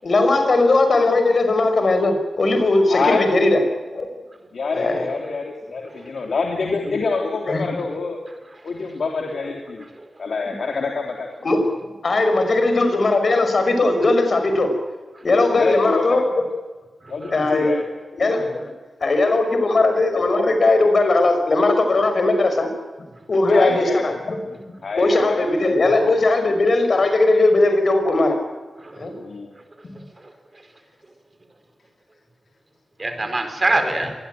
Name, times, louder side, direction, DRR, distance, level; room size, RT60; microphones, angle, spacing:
voice 1, 0.0-3.6 3.9-4.1 4.7-5.1 7.5-7.7 10.5-10.6 11.4-11.7 12.0-14.7 15.2-16.4 17.3-17.7 18.2-18.7 19.0-22.7 23.3-24.4 25.0-28.4 29.0-29.1 33.7-33.9, left 2 dB, 45° left, 5.6 m, -18 dB
voice 2, 2.9-3.3 4.5-8.2 8.6-9.9 10.2-11.3 15.6-16.2 17.1-17.8 18.2-18.3 23.5-24.0 24.8-25.5 29.2-29.5, left 4 dB, 65° left, 3.2 m, -26 dB
voice 3, 17.0-17.6 28.8-29.1 29.9-30.3 33.0-34.1, right 2 dB, 25° right, 4.6 m, -26 dB
25.0 x 21.0 x 9.3 m
wide cardioid pair, 155°, 0 cm